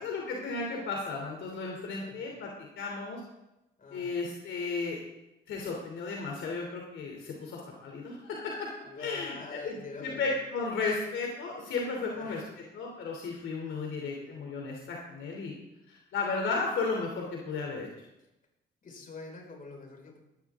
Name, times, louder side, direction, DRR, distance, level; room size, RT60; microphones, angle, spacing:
voice 1, 0.0-2.5 2.8-3.2 3.9-5.0 5.5-8.7 9.0-12.4 12.7-15.5 15.9-17.9, left 4 dB, 75° left, 0 dB, 3.0 m, -34 dB
voice 2, 1.9-2.3 3.8-4.3 8.8-10.5 12.1-12.6 13.9-14.6 18.8-20.2, left 3 dB, 45° left, 1 dB, 5.2 m, -45 dB
18.5 x 13.0 x 3.7 m, 0.92 s
cardioid pair, 90°, 20 cm